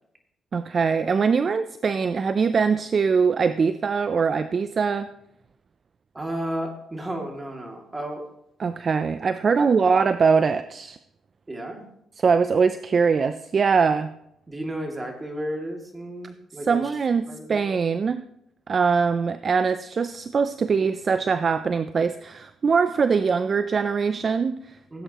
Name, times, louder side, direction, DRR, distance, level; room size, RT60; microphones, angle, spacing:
voice 1, 0.5-5.1 8.6-11.0 12.2-14.1 16.7-18.2 18.7-24.8, right 5 dB, 45° right, 12 dB, 0.4 m, -22 dB
voice 2, 6.1-8.2 9.6-9.8 11.5-11.8 14.5-17.0 17.3-17.6 24.9-25.0, right 1 dB, 20° right, 2 dB, 2.4 m, -33 dB
16.5 x 8.9 x 3.0 m, 0.76 s
cardioid pair, 90°, 0 cm